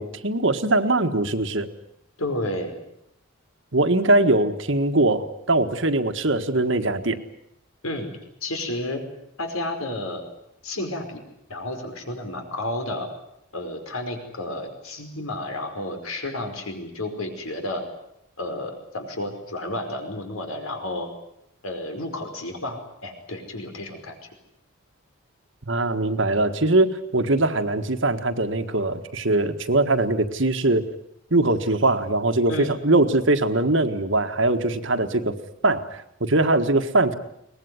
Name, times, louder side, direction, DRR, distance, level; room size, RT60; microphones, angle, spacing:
voice 1, 0.0-1.7 3.7-7.2 25.7-30.8 31.3-35.3 35.6-37.2, right 2 dB, 60° right, 8 dB, 1.6 m, -21 dB
voice 2, 2.2-2.8 7.8-8.1 8.4-9.0 9.4-10.2 10.6-11.2 11.5-13.1 13.5-17.8 18.4-21.1 21.6-24.2 32.5-32.7, left 1 dB, 80° left, 5 dB, 5.1 m, -31 dB
23.0 x 19.5 x 9.7 m, 0.78 s
head